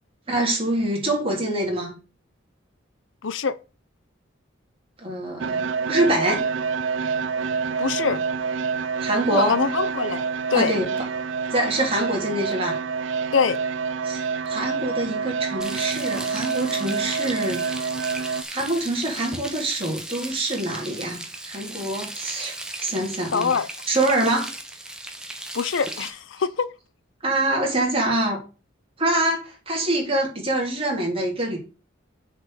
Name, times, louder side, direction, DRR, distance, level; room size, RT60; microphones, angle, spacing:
voice 1, 0.3-1.9 5.0-6.4 9.0-9.6 10.5-10.9 11.5-12.8 14.0-14.2 14.4-17.6 18.5-23.5 23.9-24.5 27.2-28.4 29.0-31.6, right 1 dB, 30° right, 3.2 m, -25 dB
voice 2, 3.2-3.5 7.8-8.2 9.3-10.2 10.5-10.7 13.3-13.6 23.3-23.7 25.5-26.7, left 5 dB, 75° left, 0.6 m, -23 dB
sound 1, 5.4-18.4, right 5 dB, 75° right, 0.6 m, -27 dB
Frying (food), 15.6-26.1, right 1 dB, 5° right, 1.2 m, -36 dB
7.1 x 5.2 x 7.0 m
head